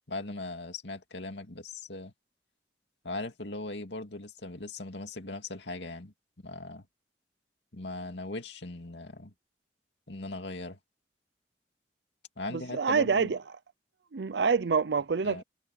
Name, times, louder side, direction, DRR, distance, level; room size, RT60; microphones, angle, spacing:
voice 1, 0.1-2.1 3.0-6.1 6.4-6.9 7.7-9.3 10.1-10.8 12.4-13.3 15.2-15.4, left 2 dB, 80° left, 2.4 m, -39 dB
voice 2, 12.7-13.4 14.1-15.4, right 5 dB, 75° right, 0.6 m, -26 dB
head